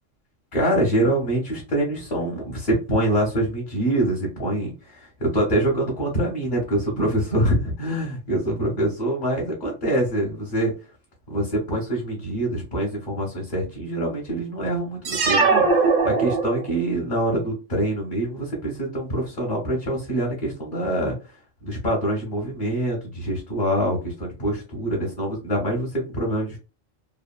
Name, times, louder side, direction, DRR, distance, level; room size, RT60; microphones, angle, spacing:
voice 1, 0.5-10.7 11.3-21.4 21.6-26.6, right 1 dB, 45° left, -3 dB, 1.0 m, -25 dB
sound 1, 15.0-16.9, right 4 dB, 50° right, 0.5 m, -20 dB
2.7 x 2.2 x 2.2 m, 0.31 s
omnidirectional pair, 1.3 m